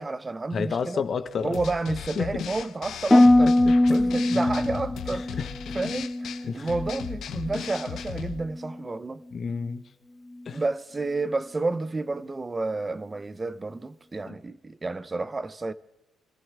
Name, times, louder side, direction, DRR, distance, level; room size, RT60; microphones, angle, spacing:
voice 1, 0.0-1.0 1.4-3.5 3.9-5.4 5.7-9.2 10.5-15.7, right 3 dB, 25° right, 0.8 m, -30 dB
voice 2, 0.5-1.6 2.2-2.3 3.4-3.7 4.3-4.6 5.4-5.7 6.4-6.7 7.3-7.4 9.3-9.8 10.4-10.6 14.3-14.4, left 6 dB, 50° left, 1.3 m, -31 dB
sound 1, 1.5-8.4, left 9 dB, 70° left, 0.9 m, -37 dB
Harp, 3.1-7.2 7.5-8.1 8.6-8.9, left 1 dB, 15° left, 0.5 m, -22 dB
25.0 x 14.5 x 3.6 m
cardioid pair, 90°, 0 cm